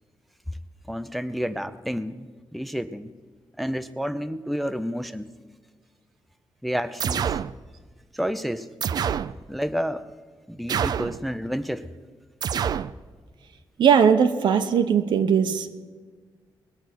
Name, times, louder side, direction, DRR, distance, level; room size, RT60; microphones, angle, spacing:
voice 1, 0.9-3.1 3.6-5.3 6.6-7.4 8.1-8.7 9.5-10.1 10.5-11.9, equal, ahead, 11 dB, 0.5 m, -30 dB
sound 1, 7.0-7.5 8.8-9.3 10.7-11.2 12.4-12.9, right 8 dB, 60° right, 0.4 m, -26 dB
voice 2, 13.8-15.7, right 7 dB, 80° right, 7 dB, 1.0 m, -19 dB
20.5 x 8.1 x 6.1 m, 1.4 s
wide cardioid pair, 140°, 8 cm